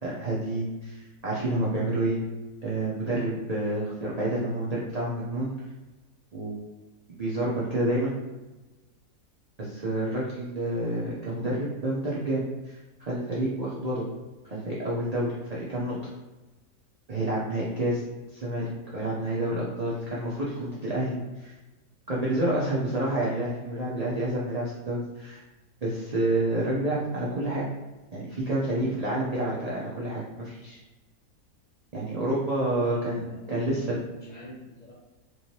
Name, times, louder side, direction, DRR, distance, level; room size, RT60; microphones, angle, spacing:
voice 1, 0.0-2.2 2.6-5.5 6.3-6.5 7.2-8.1 9.6-14.1 14.4-16.0 17.1-18.0 18.3-21.6 22.1-25.4 25.8-27.7 28.1-30.8 31.9-33.2 33.5-34.0, right 1 dB, 45° right, -7 dB, 0.5 m, -29 dB
voice 2, 32.5-34.9, left 1 dB, 30° left, -7 dB, 1.0 m, -45 dB
3.4 x 3.1 x 2.8 m, 1.1 s
omnidirectional pair, 1.6 m